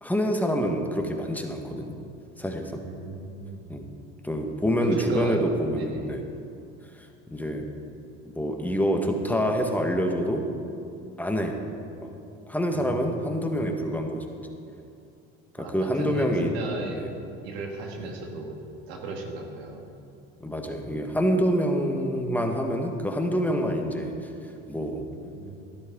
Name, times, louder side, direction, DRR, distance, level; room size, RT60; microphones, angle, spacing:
voice 1, 0.0-1.9 2.4-2.8 3.7-3.9 4.2-6.2 7.3-7.7 8.2-10.4 11.2-11.6 12.0-12.1 12.5-14.2 15.7-16.6 16.9-17.1 20.4-24.1 24.7-25.1, equal, 5° left, 3 dB, 1.6 m, -26 dB
voice 2, 2.8-3.7 4.8-5.4 5.7-6.2 12.7-13.6 15.6-17.0 17.4-18.6 18.9-19.8 25.0-25.6, right 3 dB, 80° right, 1 dB, 2.0 m, -36 dB
13.0 x 11.5 x 3.9 m, 2.6 s
hypercardioid pair, 75°, 31 cm